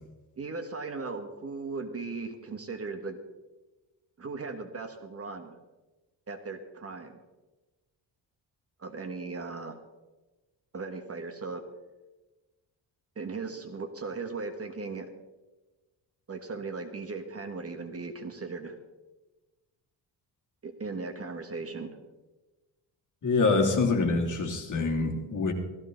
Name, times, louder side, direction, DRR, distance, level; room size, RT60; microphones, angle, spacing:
voice 1, 0.4-3.2 4.2-5.6 6.3-7.2 8.8-9.8 10.7-11.6 13.1-15.1 16.3-18.8 20.6-22.0, right 4 dB, 35° right, 7 dB, 1.3 m, -37 dB
voice 2, 23.2-25.5, left 3 dB, 45° left, 1 dB, 2.8 m, -25 dB
16.0 x 14.5 x 3.9 m, 1.1 s
cardioid pair, 120°, 42 cm